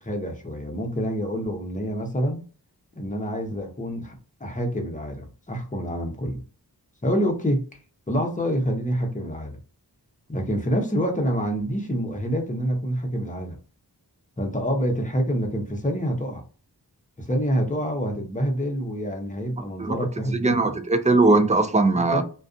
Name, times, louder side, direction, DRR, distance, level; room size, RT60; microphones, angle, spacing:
voice 1, 0.0-2.4 3.0-4.1 4.4-6.4 7.0-7.6 8.1-9.6 10.3-13.6 14.4-16.4 17.2-20.7 22.1-22.2, equal, 20° left, 0.8 m, -27 dB
voice 2, 20.3-22.2, right 3 dB, 20° right, 0.4 m, -20 dB
2.4 x 2.3 x 2.5 m
wide cardioid pair, 40°, 40 cm